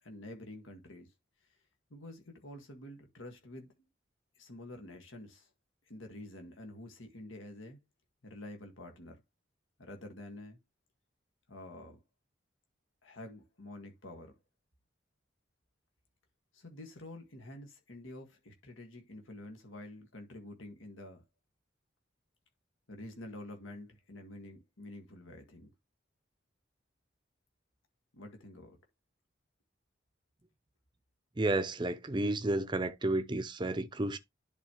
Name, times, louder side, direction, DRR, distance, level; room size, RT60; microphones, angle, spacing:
voice 1, 0.0-1.1 1.9-3.9 4.4-5.5 5.9-7.8 8.2-9.2 9.8-10.6 11.5-12.0 13.0-14.3 16.5-21.2 22.9-25.7 28.1-28.8, left 1 dB, 85° left, 1.8 m, -48 dB
voice 2, 31.4-34.2, right 2 dB, 25° right, 0.5 m, -31 dB
10.5 x 4.1 x 3.0 m
head